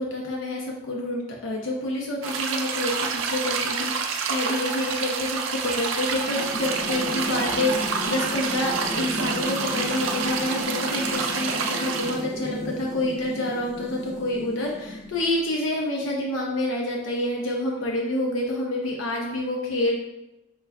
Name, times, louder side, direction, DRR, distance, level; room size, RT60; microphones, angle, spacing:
voice 1, 0.0-20.0, left 1 dB, 80° left, -1 dB, 0.7 m, -28 dB
sound 1, 2.2-12.2, right 5 dB, 75° right, 0.4 m, -28 dB
sound 2, 6.1-15.5, left 1 dB, 35° left, 0.5 m, -35 dB
5.4 x 2.3 x 3.4 m, 0.96 s
head